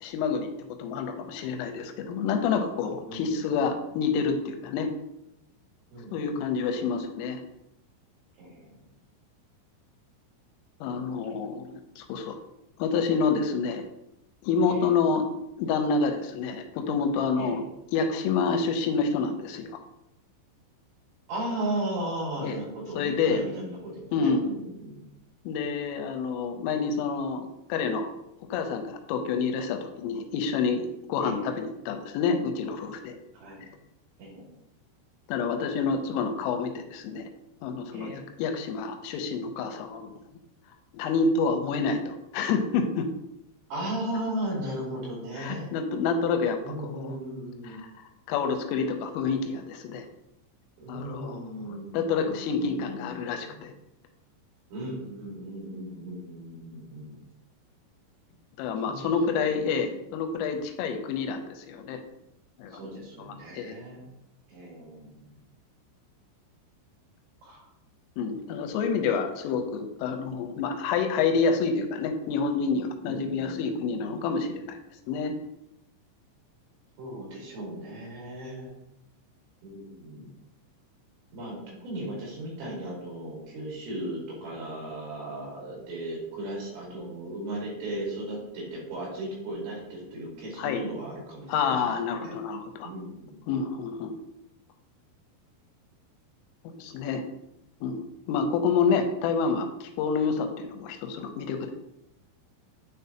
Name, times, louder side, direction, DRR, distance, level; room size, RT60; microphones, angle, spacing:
voice 1, 0.0-4.9 6.1-7.4 10.8-12.4 12.8-13.8 14.4-15.3 15.6-17.6 17.9-19.8 22.4-22.6 23.0-23.4 24.1-24.4 25.5-28.1 28.5-33.2 35.3-37.2 37.6-40.1 40.9-43.1 45.4-47.2 47.6-47.8 48.3-50.0 50.9-51.4 51.9-53.7 58.6-62.0 62.6-62.8 63.5-63.8 68.2-74.8 75.1-75.3 90.6-90.8 91.5-92.9 93.5-94.2 96.8-97.2 97.8-101.7, left 5 dB, 90° left, 6 dB, 3.2 m, -28 dB
voice 2, 3.1-3.7 5.9-6.4 8.4-8.8 14.7-14.9 17.4-17.6 21.3-25.0 31.2-31.5 33.3-33.6 34.2-34.5 37.9-38.2 43.7-45.7 46.6-47.8 50.8-53.6 54.7-57.2 58.8-59.8 62.7-64.0 64.5-65.3 67.4-67.7 73.1-74.2 77.0-78.7 79.6-80.3 81.3-91.9 92.1-92.3 92.8-93.4, right 1 dB, 70° right, -4 dB, 4.2 m, -36 dB
9.6 x 3.8 x 2.8 m, 0.84 s
omnidirectional pair, 5.7 m